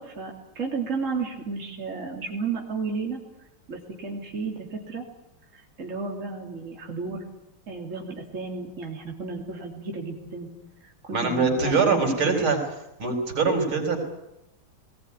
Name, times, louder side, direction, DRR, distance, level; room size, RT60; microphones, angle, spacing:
voice 1, 0.0-3.2 3.7-5.0 5.5-7.2 7.7-10.5 10.8-12.4, right 4 dB, 35° right, 0 dB, 3.4 m, -33 dB
voice 2, 11.1-12.6 13.0-14.0, right 4 dB, 70° right, 3 dB, 5.6 m, -23 dB
20.0 x 19.5 x 9.8 m, 0.86 s
omnidirectional pair, 2.3 m